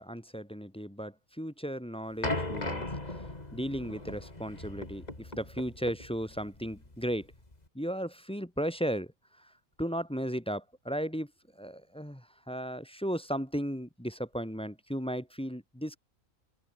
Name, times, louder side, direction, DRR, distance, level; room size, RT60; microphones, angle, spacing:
voice 1, 0.0-2.8 3.5-7.3 7.7-9.1 9.8-11.3 11.6-16.0, equal, 5° left, 1.3 m, -35 dB
sound 1, 2.2-7.6, left 2 dB, 30° left, 3.5 m, -38 dB
open air
omnidirectional pair, 1.4 m